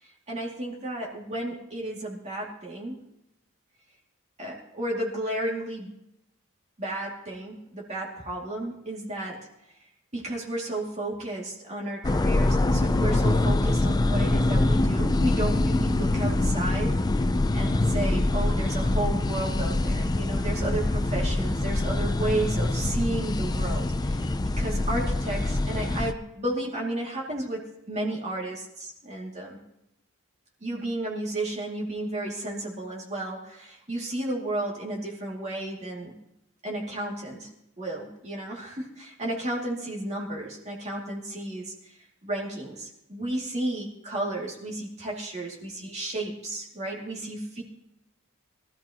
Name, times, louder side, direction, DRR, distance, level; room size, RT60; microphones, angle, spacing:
voice 1, 0.0-3.0 4.4-5.9 6.8-9.5 10.1-17.2 17.5-24.3 24.6-29.6 30.6-36.1 36.6-37.5 37.8-47.6, right 1 dB, 30° right, -3 dB, 2.4 m, -33 dB
sound 1, 12.0-26.1, left 2 dB, 20° left, 0.4 m, -24 dB
22.0 x 14.0 x 2.9 m, 0.80 s
head